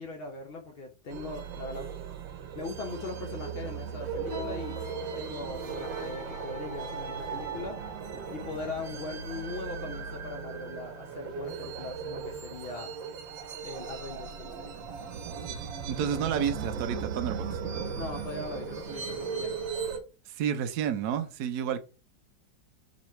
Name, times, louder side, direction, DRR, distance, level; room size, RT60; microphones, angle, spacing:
voice 1, 0.0-1.9 2.5-4.8 5.1-7.8 8.3-12.9 13.6-14.7 17.9-19.8, left 3 dB, 75° left, 0.5 m, -40 dB
sound 1, 1.1-20.0, right 6 dB, 85° right, 1.7 m, -37 dB
sound 2, 4.3-10.0 10.6-10.8 11.5-11.8 12.2-12.4 13.1-13.2, left 1 dB, 15° left, 1.1 m, -48 dB
voice 2, 15.9-17.6 20.3-21.8, right 8 dB, 65° right, 1.1 m, -30 dB
3.9 x 3.1 x 4.3 m
omnidirectional pair, 2.0 m